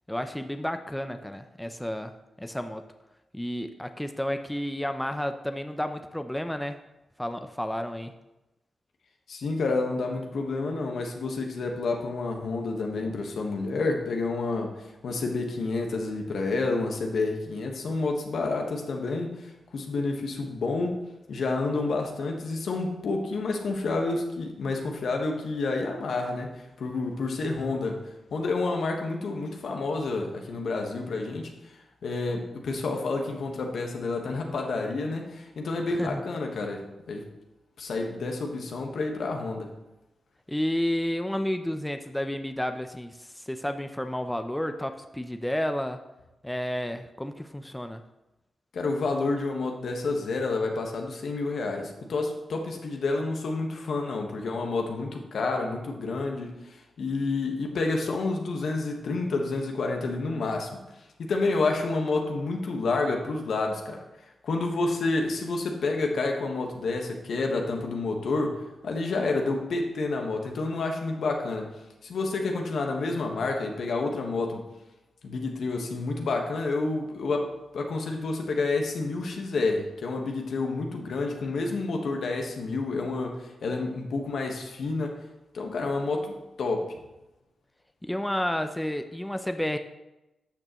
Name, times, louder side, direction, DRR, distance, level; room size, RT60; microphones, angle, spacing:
voice 1, 0.1-2.8 3.3-6.8 7.2-8.1 36.0-36.2 40.5-46.0 46.4-48.0 88.0-89.8, left 1 dB, 10° left, 8 dB, 0.6 m, -31 dB
voice 2, 9.3-21.0 21.3-28.0 28.3-37.2 37.8-39.7 48.7-60.8 61.2-64.0 64.4-68.6 68.8-71.7 72.0-74.6 75.2-85.2 85.5-86.9, left 3 dB, 75° left, 2 dB, 1.3 m, -29 dB
12.0 x 6.5 x 3.0 m, 0.98 s
cardioid pair, 55°, 0 cm